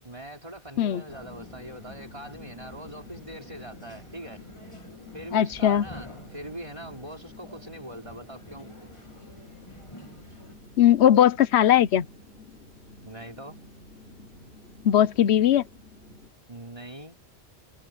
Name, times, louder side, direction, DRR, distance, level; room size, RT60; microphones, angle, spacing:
voice 1, 0.0-4.4 5.1-8.7 13.0-13.6 16.5-17.2, right 1 dB, 30° right, 4.3 m, -42 dB
sound 1, 1.1-16.3, left 2 dB, 65° left, 5.3 m, -50 dB
sound 2, 1.1-10.6, left 1 dB, 30° left, 2.9 m, -49 dB
voice 2, 5.3-5.8 10.8-12.1 14.8-15.7, left 11 dB, 85° left, 1.0 m, -19 dB
omnidirectional pair, 1.1 m